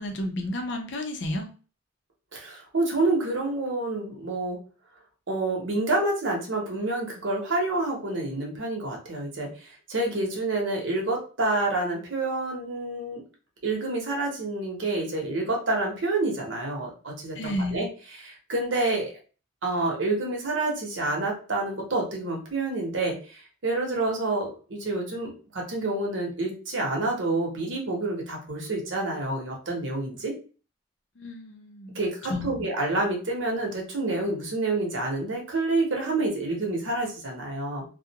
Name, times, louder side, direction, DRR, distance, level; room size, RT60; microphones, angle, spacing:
voice 1, 0.0-1.5 17.3-17.9 31.2-32.0 32.3-32.6, left 1 dB, 65° left, 3 dB, 0.6 m, -31 dB
voice 2, 2.3-4.6 5.3-13.2 13.6-17.9 18.1-19.1 19.6-30.3 31.9-37.8, right 2 dB, 75° right, 0 dB, 0.9 m, -28 dB
2.3 x 2.1 x 2.8 m, 0.37 s
head